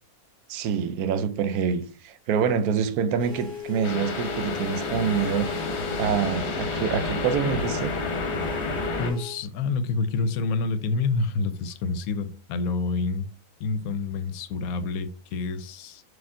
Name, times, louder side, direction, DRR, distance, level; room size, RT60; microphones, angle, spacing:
voice 1, 0.5-5.5 6.0-7.9, right 7 dB, 80° right, 1.0 m, -26 dB
sound 1, 3.2-9.4, left 8 dB, 15° right, 2.0 m, -37 dB
sound 2, 3.8-9.1, left 2 dB, 55° left, 1.1 m, -30 dB
voice 2, 9.0-13.3 13.6-16.0, left 3 dB, 75° left, 1.0 m, -28 dB
4.3 x 2.6 x 3.6 m
omnidirectional pair, 1.6 m